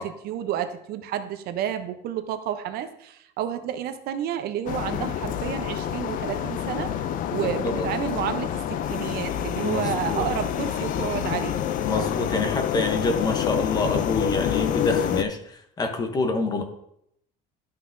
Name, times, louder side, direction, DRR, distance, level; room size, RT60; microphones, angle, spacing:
voice 1, 0.0-6.9 7.3-8.6 8.9-11.6, right 10 dB, 55° right, 9 dB, 0.6 m, -30 dB
sound 1, 4.7-15.2, left 10 dB, 45° left, 0.4 m, -27 dB
voice 2, 7.3-7.9 9.6-10.2 11.8-16.6, left 2 dB, 20° left, 6 dB, 0.8 m, -27 dB
12.0 x 5.7 x 2.6 m, 0.75 s
cardioid pair, 165°, 19 cm